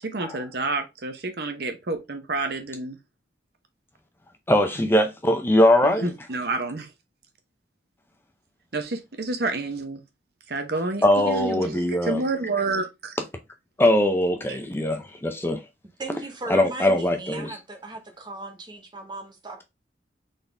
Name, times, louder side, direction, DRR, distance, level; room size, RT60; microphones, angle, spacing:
voice 1, 0.0-3.0 5.8-6.9 8.7-10.0 10.5-13.2 14.5-14.6, right 3 dB, 60° right, 0.8 m, -29 dB
voice 2, 4.5-6.1 11.0-12.2 13.8-15.6 16.5-17.5, left 1 dB, 15° left, 0.6 m, -21 dB
voice 3, 16.0-19.6, right 2 dB, 25° right, 1.0 m, -37 dB
4.1 x 3.9 x 3.4 m
head